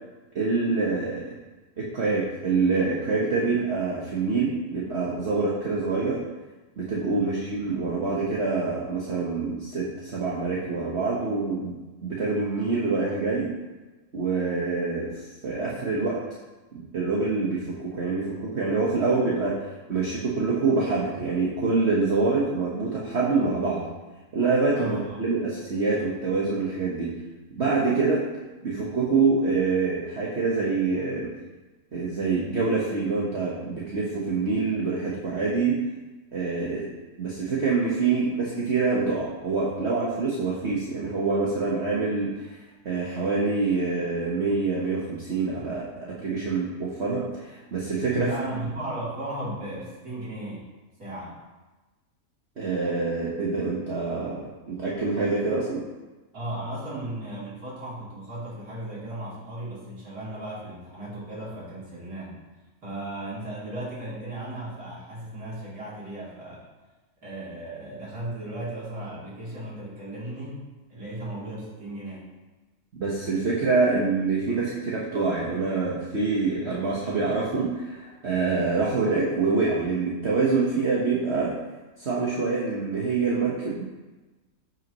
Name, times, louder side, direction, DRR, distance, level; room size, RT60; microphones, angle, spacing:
voice 1, 0.3-1.3 1.8-6.2 6.8-13.5 14.1-16.2 16.7-19.6 19.9-23.8 24.3-27.1 27.5-28.2 28.6-31.3 31.9-35.8 36.3-36.9 37.2-42.6 42.8-48.3 52.6-55.8 73.0-81.5 82.0-83.9, right 4 dB, 45° right, -5 dB, 1.5 m, -26 dB
voice 2, 24.8-25.3 48.1-50.7 51.0-51.4 56.3-62.4 62.8-66.6 67.2-70.6 70.9-72.3, right 1 dB, 65° right, -7 dB, 3.6 m, -36 dB
14.5 x 6.1 x 3.1 m, 1.2 s
omnidirectional pair, 1.7 m